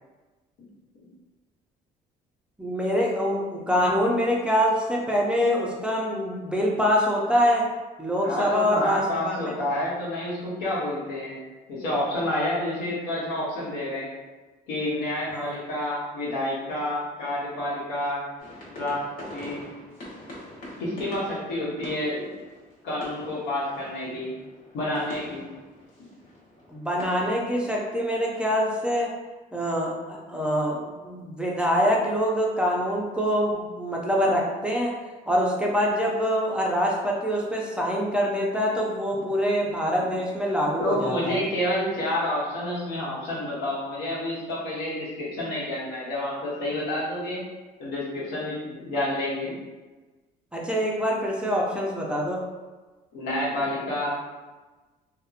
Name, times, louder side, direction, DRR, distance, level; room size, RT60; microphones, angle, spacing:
voice 1, 2.6-7.7 8.0-9.5 15.3-15.5 26.7-29.1 29.5-35.0 35.3-41.4 50.5-52.4, equal, 5° right, -3 dB, 0.4 m, -25 dB
voice 2, 8.2-11.4 11.7-14.1 14.7-18.2 18.8-19.0 19.3-19.6 20.8-22.3 22.8-24.3 24.7-25.4 40.8-47.4 47.8-49.5 53.1-54.2, left 1 dB, 85° left, -6 dB, 1.0 m, -29 dB
sound 1, 18.4-27.5, left 1 dB, 65° left, 1.0 m, -44 dB
2.7 x 2.1 x 2.4 m, 1.3 s
cardioid pair, 110°, 17 cm